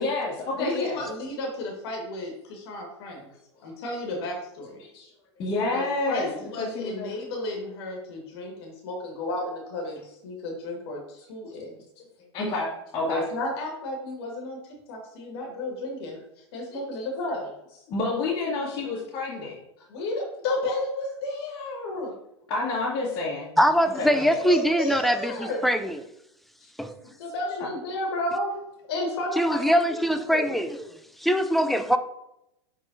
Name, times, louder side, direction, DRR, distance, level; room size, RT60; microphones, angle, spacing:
voice 1, 0.0-1.0 4.9-5.1 5.4-7.1 12.0-12.1 12.3-13.2 15.6-15.7 16.7-17.1 17.9-19.6 22.5-23.5 24.0-24.4 26.6-26.7, left 3 dB, 35° left, 1.7 m, -29 dB
voice 2, 0.5-3.3 3.6-4.8 5.7-11.7 13.0-17.5 19.9-22.1 23.9-25.6 27.2-28.6 28.9-30.6, left 2 dB, 60° left, 1.8 m, -32 dB
voice 3, 23.6-26.0 26.8-26.9 29.4-30.8 31.2-32.0, equal, ahead, 0.4 m, -22 dB
9.6 x 3.8 x 2.7 m
figure-of-eight pair, 95°, 15 cm